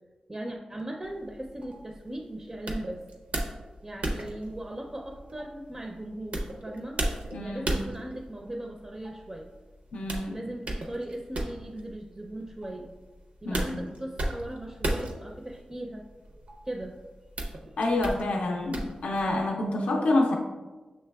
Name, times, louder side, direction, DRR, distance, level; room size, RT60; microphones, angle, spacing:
voice 1, 0.3-3.0 3.8-9.5 10.3-12.9 13.4-17.0, right 1 dB, 25° right, 2 dB, 0.4 m, -38 dB
sound 1, 1.0-19.5, right 1 dB, 85° right, 0.6 m, -36 dB
voice 2, 7.3-7.7 9.9-10.4 13.4-13.9 17.8-20.3, left 2 dB, 80° left, 1 dB, 0.4 m, -27 dB
6.6 x 3.1 x 2.2 m, 1.3 s
cardioid pair, 70°, 2 cm